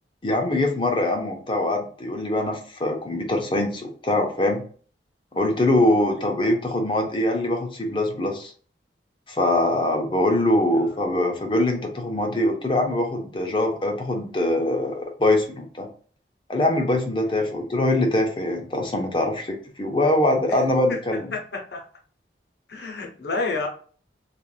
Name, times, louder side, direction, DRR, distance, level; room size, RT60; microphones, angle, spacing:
voice 1, 0.2-4.6 5.3-8.5 9.3-15.9 16.5-21.3, left 1 dB, 30° left, 0.5 m, -23 dB
voice 2, 21.3-21.9 22.7-23.7, left 3 dB, 65° left, 0.7 m, -30 dB
3.2 x 2.4 x 2.3 m
head